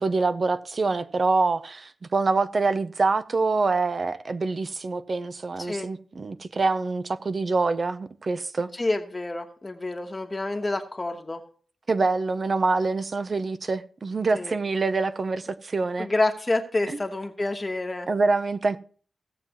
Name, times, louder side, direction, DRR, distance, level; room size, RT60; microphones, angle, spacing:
voice 1, 0.0-8.7 11.9-16.1 18.1-18.8, right 3 dB, 45° right, 0.7 m, -25 dB
voice 2, 8.7-11.4 14.3-14.5 16.0-18.1, left 2 dB, 25° left, 1.2 m, -28 dB
17.0 x 7.6 x 3.0 m
wide cardioid pair, 110°, 0 cm